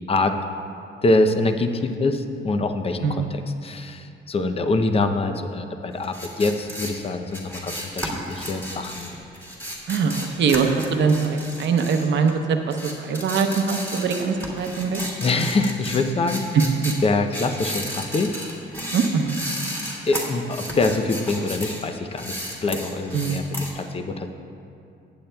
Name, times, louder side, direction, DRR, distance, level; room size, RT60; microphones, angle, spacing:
voice 1, 1.0-9.1 15.2-16.6 17.0-18.3 20.0-24.3, left 2 dB, 30° left, 7 dB, 0.6 m, -24 dB
sound 1, 6.0-12.4 12.7-21.8 22.1-23.7, equal, 10° left, 2.3 m, -33 dB
voice 2, 9.9-15.0 16.5-16.6 18.9-19.4 23.1-23.4, right 5 dB, 65° right, 5 dB, 0.8 m, -22 dB
16.0 x 8.7 x 2.3 m, 2.5 s
cardioid pair, 90°, 20 cm